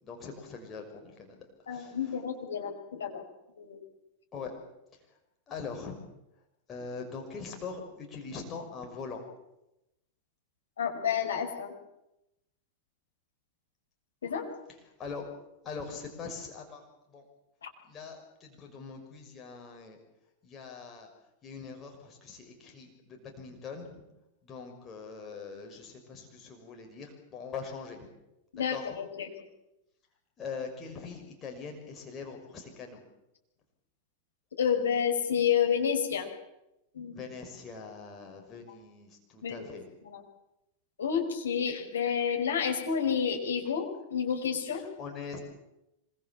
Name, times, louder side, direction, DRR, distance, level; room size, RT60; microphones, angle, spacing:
voice 1, 0.0-2.2 4.3-4.6 5.5-6.0 6.7-9.2 15.0-15.3 15.6-16.8 17.1-17.2 17.8-20.0 20.4-21.1 21.4-24.0 24.4-28.1 28.6-29.0 30.4-33.0 37.1-39.9 44.7-45.4, left 5 dB, 25° left, 2 dB, 6.0 m, -42 dB
voice 2, 1.7-3.2 3.6-3.8 10.8-11.7 14.2-14.5 17.6-17.7 28.5-29.3 34.6-36.3 36.9-37.2 39.4-39.7 40.0-40.2 41.0-44.8, left 7 dB, 70° left, 3 dB, 5.5 m, -30 dB
25.5 x 23.5 x 7.4 m, 0.91 s
figure-of-eight pair, 90°, 0 cm